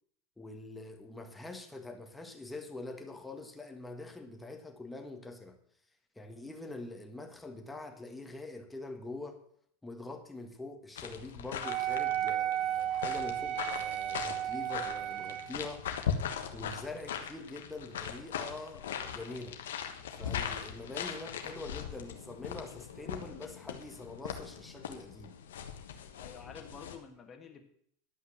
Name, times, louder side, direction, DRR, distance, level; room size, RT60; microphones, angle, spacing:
voice 1, 0.4-5.6 6.1-9.4 9.8-15.9 16.5-19.6 20.1-25.4, left 2 dB, 5° left, 1.5 m, -44 dB
sound 1, 10.9-26.9, left 8 dB, 85° left, 1.3 m, -40 dB
Wind instrument woodwind instrument, 11.6-15.6, right 12 dB, 40° right, 0.4 m, -33 dB
voice 2, 26.2-27.7, left 5 dB, 25° left, 1.8 m, -49 dB
11.0 x 5.6 x 7.3 m
supercardioid pair, 120°, 0 cm